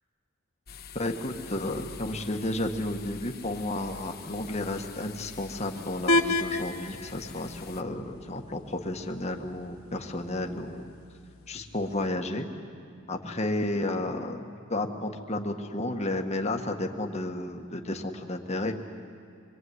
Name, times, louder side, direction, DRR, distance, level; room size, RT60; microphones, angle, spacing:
sound 1, 0.7-7.8, left 5 dB, 45° left, 1.2 m, -46 dB
voice 1, 0.9-10.9 11.5-12.5 13.1-14.4 14.7-18.8, left 1 dB, 30° left, 3 dB, 1.8 m, -32 dB
sound 2, 6.1-12.1, left 2 dB, 80° left, 1.2 m, -33 dB
27.0 x 22.5 x 9.7 m, 2.4 s
head